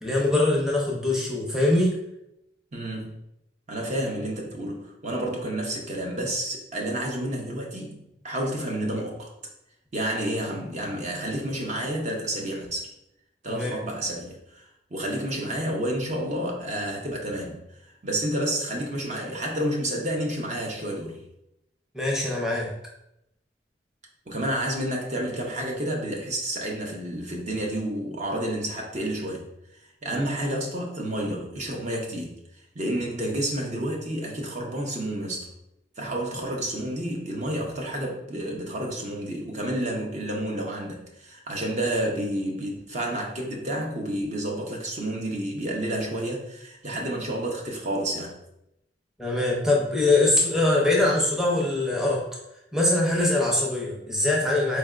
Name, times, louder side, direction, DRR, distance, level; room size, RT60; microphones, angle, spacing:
voice 1, 0.0-2.0 13.5-13.8 21.9-22.7 49.2-52.2 52.7-54.8, left 2 dB, 5° right, -3 dB, 0.6 m, -23 dB
voice 2, 2.7-3.2 3.7-9.3 9.9-12.9 13.4-14.6 14.9-17.6 18.0-21.2 24.3-29.5 30.0-32.3 32.7-35.5 36.0-48.4, right 1 dB, 40° right, 0 dB, 0.7 m, -30 dB
4.3 x 3.4 x 2.4 m, 0.82 s
head